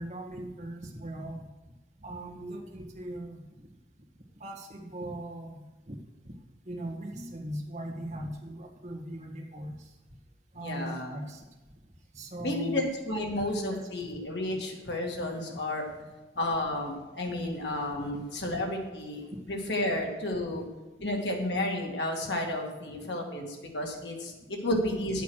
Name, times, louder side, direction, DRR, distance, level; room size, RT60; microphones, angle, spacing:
voice 1, 0.0-1.5 2.0-3.4 4.4-6.0 6.3-6.4 6.7-9.9 10.5-11.4 12.1-12.8 13.3-13.4 13.7-13.8 18.0-18.2, right 1 dB, 40° right, 1 dB, 1.8 m, -39 dB
voice 2, 10.6-11.2 12.4-15.9 16.4-20.6 21.0-25.2, left 1 dB, 80° left, 1 dB, 2.2 m, -32 dB
10.5 x 8.2 x 6.4 m, 1.2 s
head